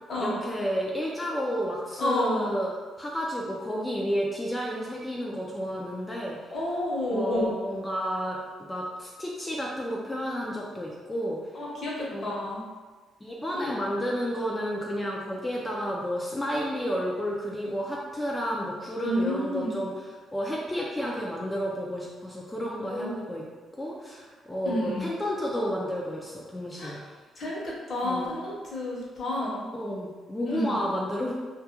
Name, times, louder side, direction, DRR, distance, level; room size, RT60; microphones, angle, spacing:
voice 1, 0.2-6.4 7.1-11.4 12.1-12.3 13.2-19.9 20.3-23.4 23.8-27.0 28.0-28.3 29.7-31.3, equal, 15° left, -3 dB, 0.3 m, -31 dB
voice 2, 2.0-2.5 6.5-7.5 11.5-12.6 13.5-13.7 19.0-19.8 22.8-23.2 24.6-25.1 26.8-27.0 27.4-29.7 30.4-30.7, left 1 dB, 50° left, -5 dB, 0.9 m, -30 dB
2.3 x 2.1 x 2.8 m, 1.4 s
cardioid pair, 90°, 0 cm